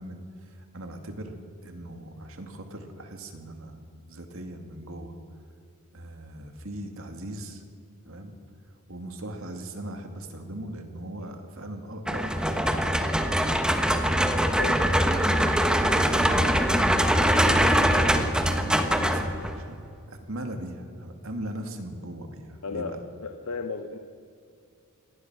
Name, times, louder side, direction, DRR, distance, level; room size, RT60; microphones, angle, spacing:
voice 1, 0.0-1.4 1.6-5.2 5.9-7.6 8.0-8.3 8.9-13.5 15.2-19.8 20.1-23.0, right 1 dB, 65° right, 5 dB, 2.4 m, -39 dB
sound 1, 12.1-19.7, equal, 5° right, 1.2 m, -23 dB
voice 2, 22.6-24.0, left 4 dB, 85° left, 6 dB, 1.1 m, -34 dB
25.5 x 19.0 x 6.3 m, 2.4 s
head